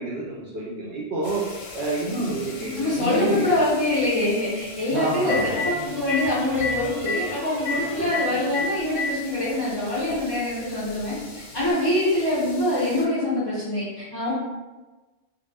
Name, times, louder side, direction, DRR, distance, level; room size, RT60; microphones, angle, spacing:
voice 1, 0.0-1.4 1.7-3.6 4.9-5.6 8.0-8.1 8.5-8.6, right 2 dB, 60° right, -4 dB, 0.7 m, -28 dB
sound 1, 1.2-13.1, left 3 dB, 90° left, 1.0 m, -43 dB
Telephone, 2.5-2.6 4.7-4.8 5.2-5.7 6.1-6.2 6.6-6.7 7.0-7.2 7.7-7.8 8.1-8.2 8.5-9.1 10.1-10.2 11.6-11.7, left 6 dB, 65° left, 0.8 m, -27 dB
sound 2, 2.6-3.5 5.4-9.1, equal, 85° right, 1.0 m, -39 dB
voice 2, 2.8-14.3, left 1 dB, 30° left, -10 dB, 0.5 m, -24 dB
2.5 x 2.0 x 3.2 m, 1.2 s
omnidirectional pair, 1.3 m